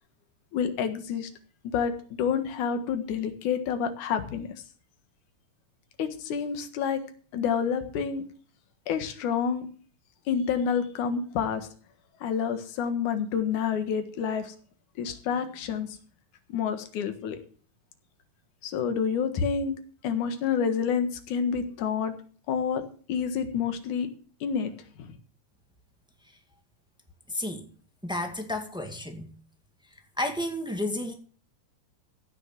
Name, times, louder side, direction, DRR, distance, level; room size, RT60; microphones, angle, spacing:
voice 1, 0.5-1.3 1.7-1.9 2.2-4.5 6.0-7.0 7.3-8.2 8.9-9.7 10.3-11.7 12.2-14.5 15.0-15.9 16.5-17.4 18.6-19.7 20.0-22.1 22.5-22.8 23.1-24.1 24.4-24.7 25.0-25.1, left 7 dB, 65° left, 2.9 m, -28 dB
voice 2, 27.3-27.7 28.0-29.3 30.2-31.1, left 1 dB, ahead, 1.0 m, -31 dB
16.0 x 6.4 x 7.5 m
omnidirectional pair, 3.9 m